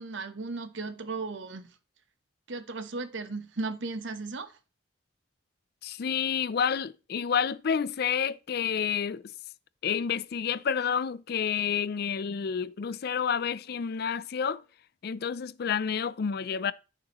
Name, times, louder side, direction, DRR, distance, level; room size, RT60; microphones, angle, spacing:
voice 1, 0.0-1.7 2.5-4.6, right 3 dB, 75° right, 1.0 m, -36 dB
voice 2, 5.8-9.2 9.8-14.6 15.0-16.7, left 7 dB, 55° left, 0.4 m, -29 dB
13.5 x 6.6 x 3.0 m
head